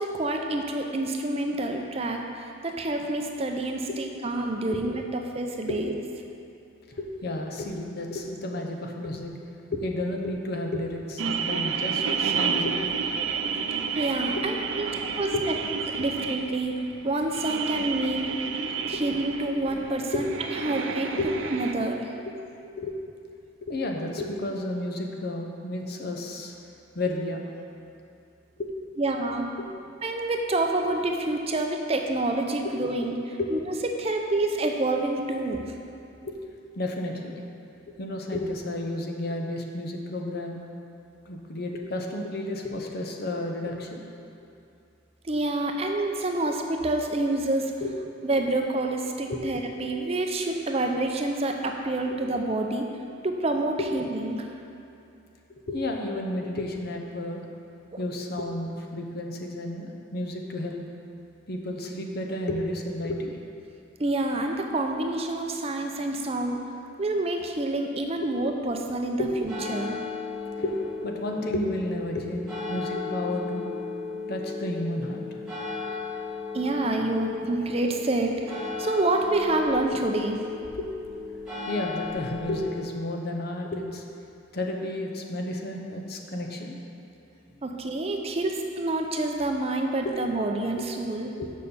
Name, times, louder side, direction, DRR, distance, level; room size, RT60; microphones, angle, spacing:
voice 1, 0.0-5.9 14.0-14.9 15.2-15.3 15.9-18.3 18.9-21.1 21.5-22.1 29.0-29.4 30.0-33.1 33.5-33.6 33.9-35.7 45.2-47.7 48.2-52.9 53.2-54.5 64.0-66.6 67.0-70.0 75.8-76.0 76.5-80.4 87.6-91.3, right 2 dB, 30° right, 3 dB, 0.5 m, -28 dB
voice 2, 6.9-9.4 9.7-12.9 14.3-14.4 15.3-15.4 18.9-19.0 19.5-19.6 20.1-20.2 21.2-21.3 22.6-22.9 23.7-26.5 26.9-27.4 28.6-28.7 33.4-33.5 36.2-36.3 36.8-37.4 38.0-40.6 41.3-44.0 47.8-47.9 49.3-49.4 49.8-49.9 55.7-57.4 58.0-60.8 61.5-63.3 69.2-69.3 70.6-73.7 74.3-75.2 80.8-80.9 81.6-84.0 84.5-86.8 90.7-90.8 91.4-91.5, left 1 dB, 55° left, 2 dB, 0.8 m, -32 dB
sound 1, 11.2-21.7, right 6 dB, 75° right, 0.5 m, -30 dB
sound 2, 69.2-82.8, left 4 dB, 5° right, 1.8 m, -35 dB
6.5 x 5.4 x 6.9 m, 2.6 s
head